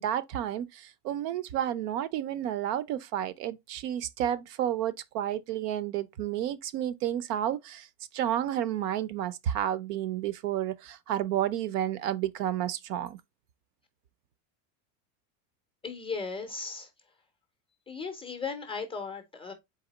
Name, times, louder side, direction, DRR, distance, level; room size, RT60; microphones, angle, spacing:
voice 1, 0.0-7.9 8.1-13.2, right 11 dB, 70° right, 0.7 m, -31 dB
voice 2, 15.8-16.9 17.9-19.5, left 4 dB, 10° left, 0.4 m, -36 dB
4.1 x 2.8 x 3.9 m
supercardioid pair, 140°, 49 cm